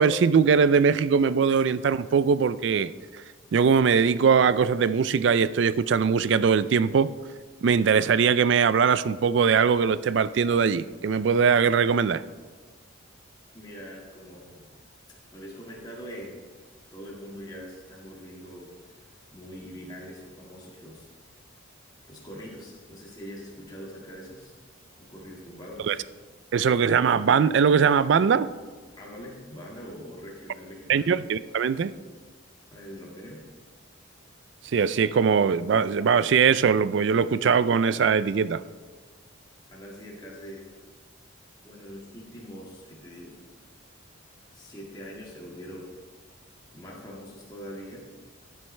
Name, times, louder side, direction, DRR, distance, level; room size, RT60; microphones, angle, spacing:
voice 1, 0.0-2.9 3.5-7.1 7.6-12.2 25.9-26.0 26.5-28.5 30.9-31.9 34.7-38.6, right 6 dB, 60° right, 16 dB, 0.3 m, -21 dB
voice 2, 13.5-14.7 15.3-16.4 16.9-19.0 19.3-21.1 22.1-24.5 25.0-26.0 29.0-31.2 32.7-33.4 39.7-40.6 41.6-43.4 44.5-45.9 46.7-48.0, equal, 20° left, -4 dB, 2.0 m, -43 dB
14.5 x 8.8 x 3.3 m, 1.5 s
head